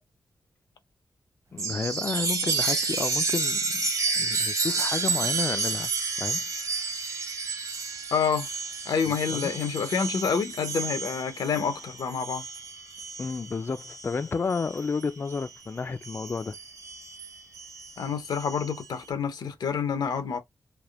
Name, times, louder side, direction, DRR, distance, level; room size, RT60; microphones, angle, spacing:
voice 1, 1.5-3.9 4.2-5.9 6.2-6.4 9.3-9.5 13.2-16.6, left 4 dB, 35° left, 0.3 m, -31 dB
Chime, 1.6-15.6 16.0-18.8, right 4 dB, 55° right, 1.1 m, -31 dB
voice 2, 8.1-8.5 8.9-12.4 18.0-20.4, left 6 dB, 85° left, 0.8 m, -28 dB
3.4 x 2.5 x 2.3 m
wide cardioid pair, 90°, 7 cm